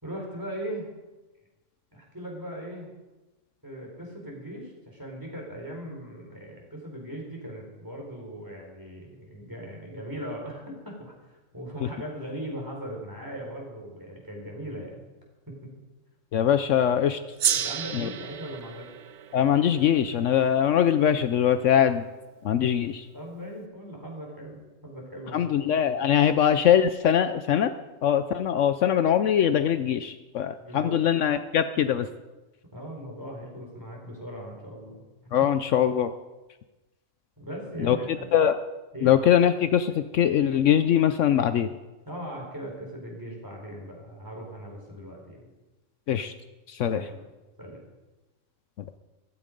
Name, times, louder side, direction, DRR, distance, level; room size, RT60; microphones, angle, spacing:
voice 1, 0.0-0.9 1.9-2.9 3.6-15.1 15.5-15.6 17.6-18.9 23.1-25.6 30.6-31.1 32.7-35.0 37.4-38.3 38.9-39.2 42.0-45.5 46.9-47.3 47.6-47.8, equal, 15° right, -1 dB, 4.4 m, -39 dB
voice 2, 16.3-17.2 19.3-22.0 22.4-23.0 25.3-27.7 28.0-32.0 35.3-36.1 37.8-38.0 38.3-38.6 39.0-41.7 46.1-46.3 46.8-47.0, left 9 dB, 70° left, 11 dB, 1.0 m, -22 dB
Gong, 17.4-22.1, right 9 dB, 60° right, 1.0 m, -33 dB
15.0 x 14.5 x 5.2 m, 1.1 s
omnidirectional pair, 1.4 m